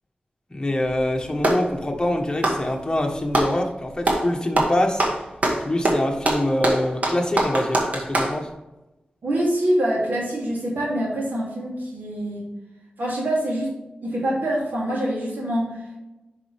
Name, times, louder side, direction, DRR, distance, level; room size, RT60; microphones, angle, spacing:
voice 1, 0.5-5.0 5.6-8.5, left 1 dB, 25° left, 2 dB, 1.4 m, -24 dB
Clapping, 0.8-1.7 2.3-3.6 4.0-4.3 4.6-8.4, right 1 dB, 55° right, 1.9 m, -23 dB
voice 2, 9.2-12.4 13.0-13.7 14.0-16.0, right 1 dB, 90° right, -5 dB, 3.3 m, -25 dB
11.0 x 5.6 x 3.6 m, 1.0 s
wide cardioid pair, 85°, 3 cm